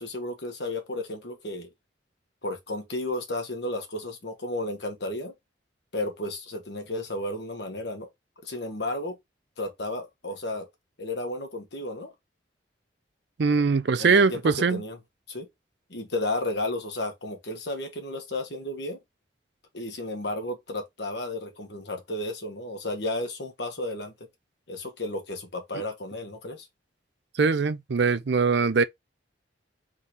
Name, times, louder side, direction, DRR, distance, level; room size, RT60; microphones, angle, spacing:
voice 1, 0.0-1.7 2.4-5.3 5.9-8.1 8.4-9.2 9.6-10.7 11.0-12.1 14.0-15.0 15.3-15.5 15.9-19.0 19.7-24.1 24.7-26.7, left 1 dB, 60° left, 1.3 m, -33 dB
voice 2, 13.4-14.8 27.4-28.8, right 4 dB, 65° right, 0.5 m, -22 dB
3.8 x 3.2 x 4.1 m
head